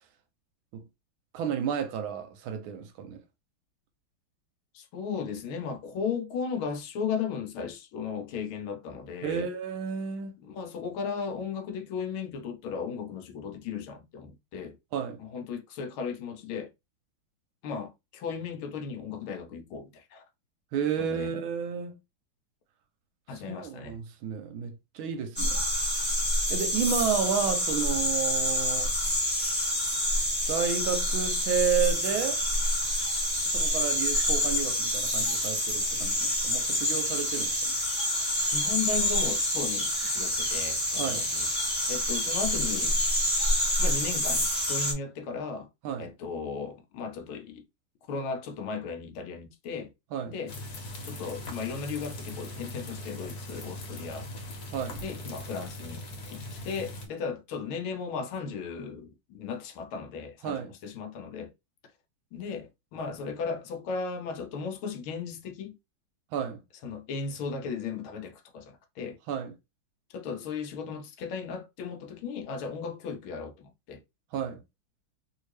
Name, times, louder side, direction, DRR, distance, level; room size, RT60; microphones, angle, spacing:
voice 1, 1.3-3.2 9.2-10.4 14.9-15.2 20.7-22.0 23.5-25.6 26.5-28.9 30.5-32.4 33.5-37.7 41.0-41.3 45.8-46.1 50.1-50.4 54.7-55.0 60.4-60.7 66.3-66.6 69.3-69.5 74.3-74.6, right 7 dB, 75° right, 1.3 m, -31 dB
voice 2, 4.7-9.5 10.4-14.8 15.2-16.7 17.6-20.2 21.0-21.3 23.3-24.0 38.5-43.0 43.8-45.7 46.0-47.6 48.1-49.9 50.3-50.5 51.0-54.3 55.0-56.0 56.3-61.5 62.3-65.7 66.8-69.2 70.1-74.0, left 5 dB, 75° left, 1.4 m, -36 dB
sound 1, 25.4-44.9, left 1 dB, 5° left, 1.1 m, -27 dB
sound 2, 50.5-57.1, left 1 dB, 55° left, 1.3 m, -40 dB
3.2 x 2.8 x 3.1 m
omnidirectional pair, 2.4 m